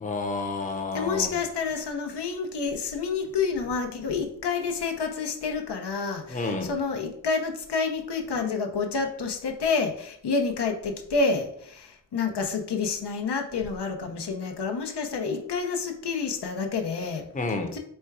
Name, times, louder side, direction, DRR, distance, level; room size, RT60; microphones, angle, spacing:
voice 1, 0.0-1.4 6.3-6.7 17.3-17.8, left 3 dB, 20° left, 4 dB, 0.7 m, -30 dB
voice 2, 0.9-17.2 17.7-17.8, left 4 dB, 75° left, 4 dB, 0.8 m, -29 dB
4.3 x 2.3 x 4.6 m, 0.66 s
cardioid pair, 65°, 41 cm